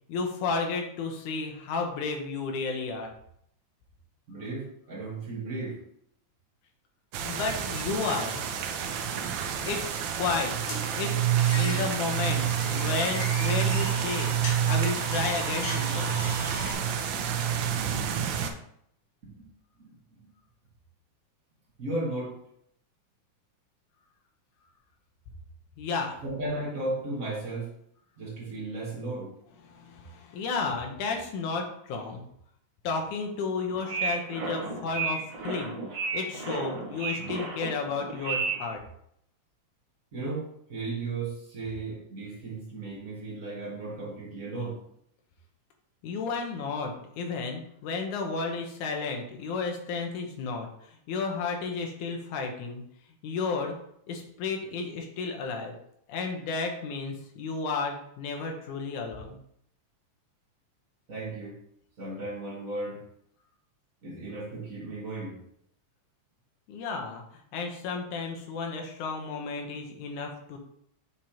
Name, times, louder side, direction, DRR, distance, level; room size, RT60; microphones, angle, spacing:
voice 1, 0.1-3.1 7.2-8.4 9.6-10.5 10.9-11.3 11.6-17.2 25.8-26.2 29.7-32.2 32.8-35.8 36.1-38.8 46.0-50.7 51.1-52.8 53.2-53.7 54.1-55.7 56.1-59.4 66.7-70.6, left 4 dB, 85° left, 2 dB, 2.4 m, -32 dB
voice 2, 4.3-5.8 19.2-19.5 19.8-20.3 21.8-22.4 26.2-27.7 28.2-29.3 36.2-36.6 40.1-44.8 61.1-61.6 62.0-63.0 64.0-65.4, right 2 dB, 40° right, -4 dB, 1.4 m, -35 dB
sound 1, 7.1-18.5, right 9 dB, 75° right, 1.8 m, -28 dB
sound 2, 10.7-16.7, left 3 dB, 65° left, 2.7 m, -37 dB
sound 3, 33.7-38.8, right 4 dB, 55° right, 0.9 m, -33 dB
7.3 x 5.0 x 2.9 m, 0.70 s
omnidirectional pair, 3.4 m